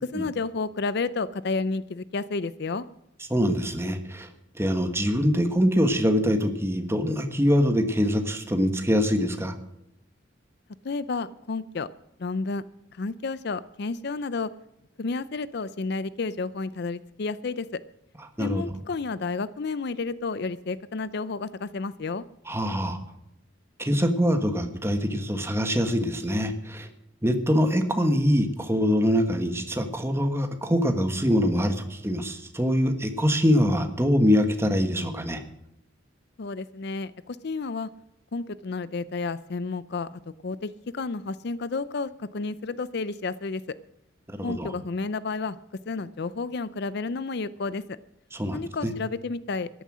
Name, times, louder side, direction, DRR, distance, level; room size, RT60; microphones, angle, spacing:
voice 1, 0.0-2.8 10.8-11.9 12.2-12.6 13.0-14.5 15.0-17.8 18.4-22.2 36.4-37.9 38.3-40.1 40.4-43.6 44.4-45.6 45.9-47.8 48.5-49.7, left 4 dB, 55° left, 17 dB, 0.5 m, -31 dB
voice 2, 3.3-4.3 4.5-9.5 18.4-18.6 22.5-23.0 23.8-26.9 27.2-35.4 44.3-44.7 48.3-48.9, equal, 15° right, 7 dB, 1.4 m, -24 dB
14.0 x 11.0 x 6.2 m, 0.83 s
head